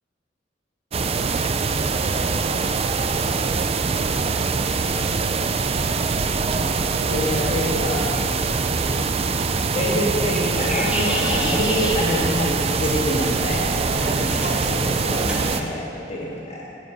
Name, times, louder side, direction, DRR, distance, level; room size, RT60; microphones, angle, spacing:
sound 1, 0.9-15.6, right 4 dB, 35° right, 0.4 m, -23 dB
voice 1, 7.1-8.6 9.7-16.6, left 1 dB, 35° left, -5 dB, 1.7 m, -26 dB
sound 2, 10.6-15.7, equal, 5° right, 1.1 m, -32 dB
9.5 x 8.0 x 6.7 m, 2.9 s
head